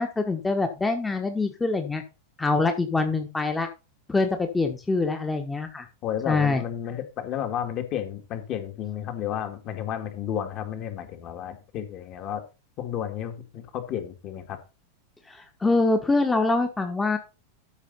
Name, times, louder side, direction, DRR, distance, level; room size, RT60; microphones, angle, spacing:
voice 1, 0.0-2.0 2.4-3.7 4.1-5.9 6.3-6.6 15.3-17.2, left 3 dB, 10° left, 1.4 m, -24 dB
voice 2, 6.0-12.4 12.8-14.6, left 10 dB, 35° left, 2.2 m, -32 dB
13.0 x 6.3 x 4.2 m
figure-of-eight pair, 90°, 0 cm